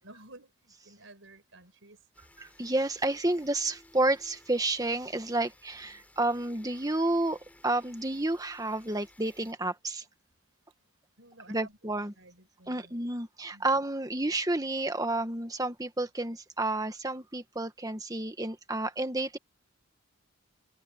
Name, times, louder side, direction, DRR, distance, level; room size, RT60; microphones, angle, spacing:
voice 1, 0.0-2.1 3.3-3.4 5.9-6.1 11.2-13.0 13.5-13.7, right 2 dB, 65° right, 5.1 m, -54 dB
sound 1, 2.1-9.5, left 1 dB, 5° left, 6.6 m, -59 dB
voice 2, 2.4-10.0 11.5-12.1 12.7-19.4, right 2 dB, 15° right, 1.4 m, -30 dB
head